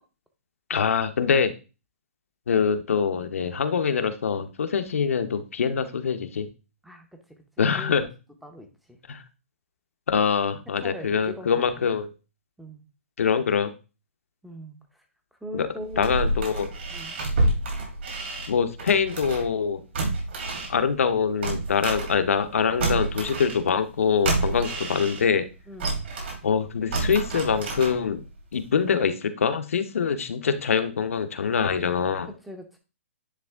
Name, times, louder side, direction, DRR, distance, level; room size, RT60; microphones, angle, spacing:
voice 1, 0.7-1.5 2.5-6.5 7.6-8.1 9.1-9.2 10.1-12.1 13.2-13.7 15.5-15.7 16.0-16.7 18.5-19.8 20.7-25.5 26.4-28.2 28.5-32.3, left 6 dB, 75° left, 8 dB, 0.9 m, -24 dB
voice 2, 7.8-8.1 8.4-9.0 10.8-11.9 12.6-12.8 14.4-14.8 15.4-16.5 16.9-17.2 25.7-25.9 32.3-32.8, equal, ahead, 5 dB, 0.7 m, -41 dB
sound 1, 15.8-19.6 19.9-22.5 22.8-25.4 25.8-28.3 28.7-28.8, right 2 dB, 55° right, 2.8 m, -29 dB
10.0 x 3.5 x 3.5 m, 0.31 s
hypercardioid pair, 165°, 7 cm